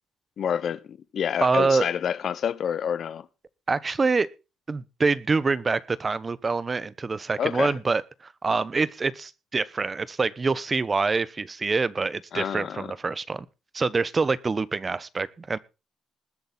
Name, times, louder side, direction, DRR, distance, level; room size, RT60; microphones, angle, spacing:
voice 1, 0.4-3.3 7.4-7.7 12.3-12.9, left 8 dB, 60° left, 1.0 m, -28 dB
voice 2, 1.4-1.9 3.7-4.3 4.7-13.4 13.7-15.6, right 4 dB, 30° right, 1.1 m, -25 dB
20.5 x 8.0 x 4.0 m
cardioid pair, 90°, 0 cm